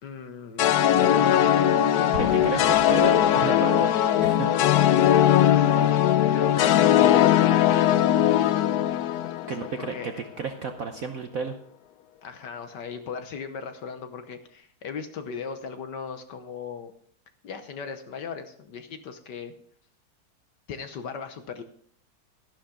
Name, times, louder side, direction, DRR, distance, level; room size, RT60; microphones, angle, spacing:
voice 1, 0.0-2.9 5.3-8.0 9.8-10.1 12.2-16.9 17.4-19.5 20.7-21.6, left 6 dB, 60° left, 8 dB, 1.4 m, -37 dB
sound 1, 0.6-9.9, left 11 dB, 85° left, 0.8 m, -20 dB
Explosion, 2.1-3.7, right 3 dB, 35° right, 1.3 m, -38 dB
voice 2, 2.2-3.9 4.2-4.5 5.8-5.9 9.5-11.6, right 5 dB, 60° right, 6 dB, 0.9 m, -32 dB
12.5 x 11.5 x 3.8 m, 0.63 s
omnidirectional pair, 2.4 m